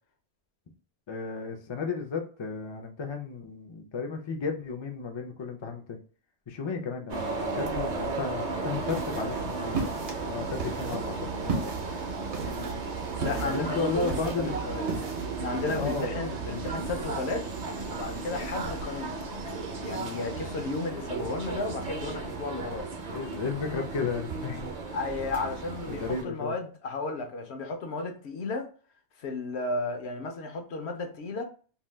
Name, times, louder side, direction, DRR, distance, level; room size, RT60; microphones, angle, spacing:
voice 1, 1.1-6.0 6.5-9.8 10.3-11.7 13.4-14.6 15.7-16.3 23.1-24.7 25.8-26.5, left 4 dB, 45° left, 0.3 m, -33 dB
sound 1, 7.1-26.2, right 4 dB, 45° right, 0.6 m, -34 dB
sound 2, 8.6-16.0, right 3 dB, 65° right, 0.9 m, -37 dB
sound 3, 8.7-20.9, right 5 dB, 90° right, 0.9 m, -50 dB
voice 2, 12.3-12.8 13.2-14.9 15.4-17.5 17.9-19.1 19.7-22.9 24.9-28.7 29.2-31.4, left 3 dB, 75° left, 0.9 m, -34 dB
2.7 x 2.2 x 3.2 m
omnidirectional pair, 1.1 m